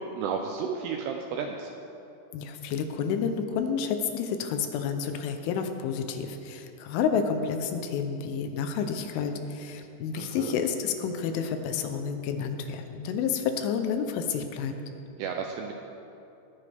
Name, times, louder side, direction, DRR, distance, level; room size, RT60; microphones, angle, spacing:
voice 1, 0.0-1.7 10.2-10.6 15.2-15.7, right 6 dB, 80° right, 3 dB, 2.4 m, -33 dB
voice 2, 2.3-14.7, left 6 dB, 85° left, 6 dB, 3.4 m, -30 dB
19.5 x 13.5 x 3.6 m, 2.8 s
omnidirectional pair, 5.6 m